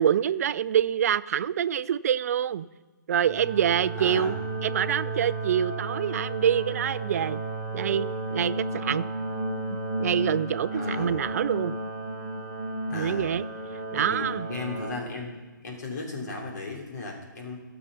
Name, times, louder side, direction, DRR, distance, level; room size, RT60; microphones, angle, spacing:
voice 1, 0.0-2.7 3.1-4.4 4.6-7.4 7.7-9.1 10.0-11.8 12.9-13.4 13.9-14.5, right 9 dB, 50° right, 16 dB, 0.5 m, -26 dB
sound 1, 3.2-14.9, right 2 dB, 5° right, 3.5 m, -33 dB
voice 2, 4.0-4.3 10.8-11.2 12.9-13.3 13.9-15.3 15.6-17.6, left 2 dB, 55° left, 0 dB, 3.3 m, -35 dB
17.5 x 7.0 x 5.5 m, 1.3 s
hypercardioid pair, 145°, 11 cm